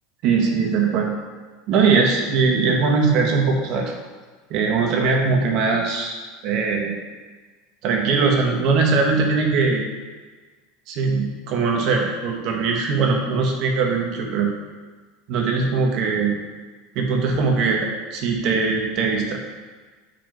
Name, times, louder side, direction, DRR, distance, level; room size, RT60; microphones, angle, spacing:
voice 1, 0.2-1.1 1.7-3.9 4.5-6.2 6.4-6.9 7.8-9.9 10.9-14.5 15.3-16.4 17.0-19.4, right 4 dB, 50° right, 1 dB, 1.7 m, -20 dB
8.8 x 4.9 x 4.8 m, 1.4 s
supercardioid pair, 130°, 0 cm